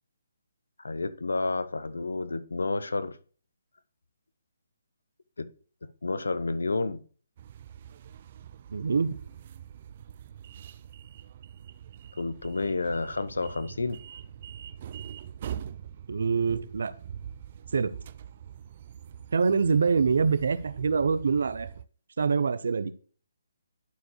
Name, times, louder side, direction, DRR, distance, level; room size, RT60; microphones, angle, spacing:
voice 1, 0.8-3.2 5.4-5.5 6.0-7.0 12.2-14.0, left 3 dB, 90° left, 13 dB, 0.8 m, -30 dB
sound 1, 7.4-21.8, right 9 dB, 40° right, 0.4 m, -44 dB
voice 2, 8.7-9.1 16.1-16.9 17.7-17.9 19.3-21.7 22.2-22.9, right 5 dB, 70° right, 14 dB, 0.7 m, -25 dB
11.5 x 4.7 x 3.1 m, 0.42 s
hypercardioid pair, 155°, 0 cm